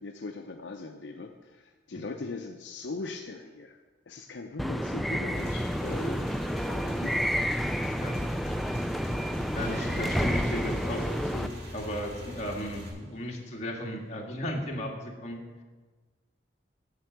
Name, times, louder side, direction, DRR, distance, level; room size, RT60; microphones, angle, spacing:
voice 1, 0.0-3.8 4.1-7.4, left 3 dB, 70° left, 4 dB, 0.6 m, -40 dB
sound 1, 4.6-11.5, equal, ahead, 0.3 m, -30 dB
Motorcycle / Engine, 5.3-12.9, equal, 60° right, 2.6 m, -42 dB
voice 2, 9.5-15.6, equal, 40° left, -1 dB, 1.8 m, -36 dB
sound 2, 9.6-13.6, right 2 dB, 75° right, 0.9 m, -46 dB
8.0 x 6.7 x 7.9 m, 1.3 s
head